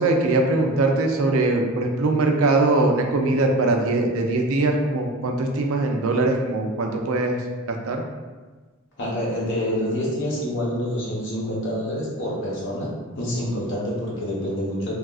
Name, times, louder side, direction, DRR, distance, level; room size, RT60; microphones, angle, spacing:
voice 1, 0.0-7.4 7.7-8.0, right 2 dB, 75° right, 3 dB, 0.4 m, -21 dB
voice 2, 9.0-14.9, equal, 60° left, -5 dB, 0.9 m, -27 dB
3.4 x 2.3 x 2.3 m, 1.3 s
head